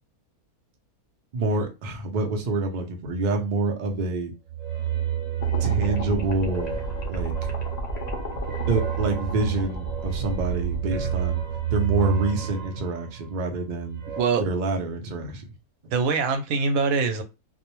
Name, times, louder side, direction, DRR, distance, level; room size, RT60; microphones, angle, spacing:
voice 1, 1.3-4.3 5.6-6.7 7.1-7.3 8.7-11.4 11.7-14.0 14.4-15.4, right 3 dB, 90° right, 0.4 m, -27 dB
sound 1, 4.5-14.2, right 10 dB, 35° right, 0.9 m, -29 dB
sound 2, 5.4-11.6, left 1 dB, 75° left, 0.3 m, -34 dB
voice 2, 15.9-17.2, right 4 dB, 70° right, 1.0 m, -24 dB
2.5 x 2.0 x 2.9 m
omnidirectional pair, 1.6 m